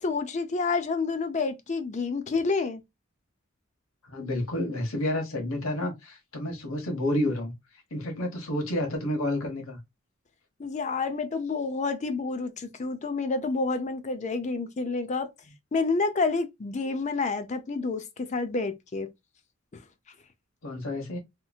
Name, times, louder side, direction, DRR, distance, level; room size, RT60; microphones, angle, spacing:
voice 1, 0.0-2.8 10.6-15.3 15.7-19.1, left 4 dB, 35° left, 0.4 m, -29 dB
voice 2, 4.1-7.5 7.9-9.8 20.6-21.2, left 1 dB, 75° left, 1.1 m, -30 dB
2.9 x 2.6 x 2.3 m
head